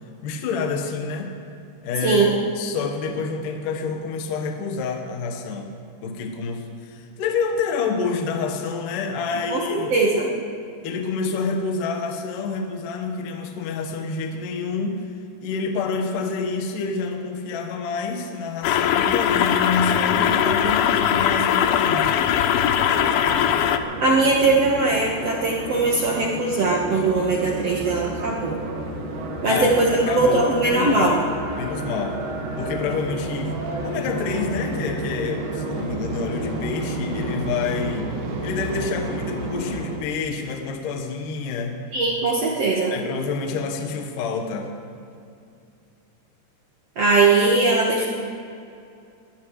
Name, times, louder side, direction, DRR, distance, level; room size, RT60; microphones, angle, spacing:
voice 1, 0.2-1.4 1.8-5.7 6.0-10.0 10.8-15.0 15.4-22.1 29.5-29.7 30.1-31.2 31.6-32.2 32.6-33.6 33.8-38.1 38.4-41.8 42.9-44.7, left 4 dB, 65° left, 3 dB, 2.4 m, -28 dB
voice 2, 2.0-2.3 9.5-10.3 24.0-28.6 29.4-31.2 41.9-42.9 47.0-48.1, right 3 dB, 70° right, -3 dB, 1.5 m, -20 dB
Water Flowing, 18.6-23.8, left 9 dB, 80° left, 2.2 m, -20 dB
sound 1, 22.8-40.0, right 2 dB, 55° right, 2.6 m, -31 dB
22.5 x 18.0 x 3.2 m, 2.5 s
omnidirectional pair, 5.0 m